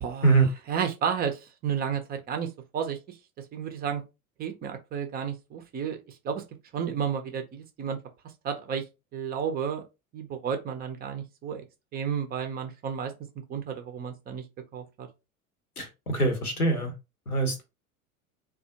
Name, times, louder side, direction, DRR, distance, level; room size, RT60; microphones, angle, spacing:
voice 1, 0.0-2.5 2.7-3.0 3.5-4.0 4.4-6.0 6.2-6.4 6.7-8.0 8.4-8.8 9.1-9.8 10.1-11.6 11.9-13.1 13.5-14.4 14.7-15.1, right 7 dB, 20° right, 0.4 m, -32 dB
voice 2, 15.8-16.9 17.3-17.6, right 3 dB, 90° left, 0.9 m, -23 dB
3.3 x 2.4 x 2.6 m
figure-of-eight pair, 75°, 43 cm